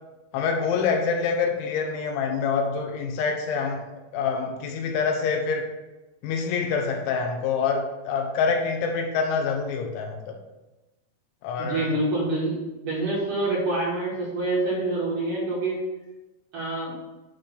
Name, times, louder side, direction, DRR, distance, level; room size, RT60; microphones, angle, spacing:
voice 1, 0.3-3.8 4.1-5.7 6.2-10.3 11.4-11.9, left 5 dB, 85° left, 4 dB, 3.3 m, -26 dB
voice 2, 11.6-15.8 16.5-16.9, right 2 dB, 50° right, -6 dB, 3.2 m, -26 dB
10.5 x 3.4 x 5.8 m, 1.1 s
omnidirectional pair, 5.3 m